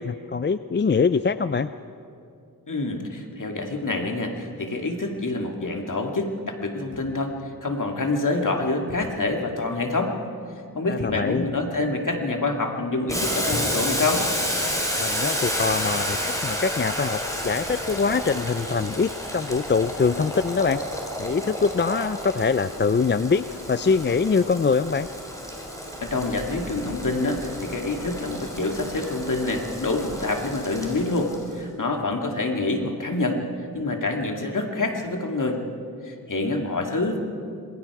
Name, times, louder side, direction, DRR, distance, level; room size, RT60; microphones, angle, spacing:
voice 1, 0.0-1.7 10.9-11.4 15.0-20.8 21.2-25.1, left 5 dB, 30° left, 13 dB, 0.4 m, -23 dB
voice 2, 2.7-7.3 7.6-10.1 10.8-14.2 26.0-33.4 33.7-35.6 36.0-37.2, left 2 dB, 55° left, 2 dB, 2.3 m, -26 dB
sound 1, 6.9-7.4 8.9-9.3 9.6-10.0 11.0-11.5 12.2-12.6 13.4-14.1 15.0-15.3, left 2 dB, 75° left, 5.2 m, -38 dB
Boiling, 13.1-31.5, equal, 10° left, 3.9 m, -31 dB
26.5 x 21.5 x 4.8 m, 2.5 s
wide cardioid pair, 85°, 37 cm